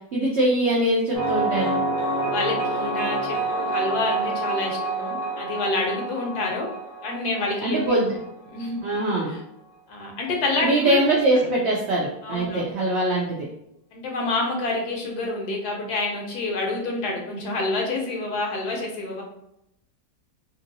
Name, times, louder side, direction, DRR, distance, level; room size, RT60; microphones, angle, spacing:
voice 1, 0.1-1.8 7.6-8.1 8.8-9.4 10.6-13.5, right 1 dB, 85° right, -3 dB, 0.5 m, -22 dB
sound 1, 1.1-8.7, right 2 dB, 45° left, 0.7 m, -28 dB
voice 2, 2.1-6.7 7.0-7.9 8.5-8.8 9.3-9.4 9.9-11.0 12.2-12.7 13.9-19.2, left 2 dB, 75° left, 1 dB, 1.2 m, -28 dB
2.9 x 2.7 x 2.6 m, 0.81 s
omnidirectional pair, 1.8 m